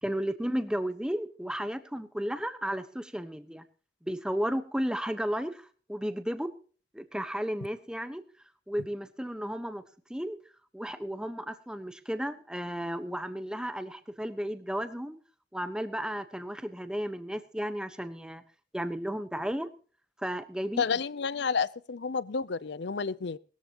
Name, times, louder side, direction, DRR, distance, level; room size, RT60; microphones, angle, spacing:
voice 1, 0.0-3.6 4.0-6.5 6.9-8.2 8.7-9.8 10.1-10.4 10.7-15.2 15.5-18.4 18.7-19.7 20.2-20.8, equal, 5° right, 10 dB, 1.2 m, -33 dB
voice 2, 20.8-23.4, left 5 dB, 65° left, 19 dB, 0.6 m, -30 dB
20.5 x 13.5 x 3.0 m, 0.41 s
head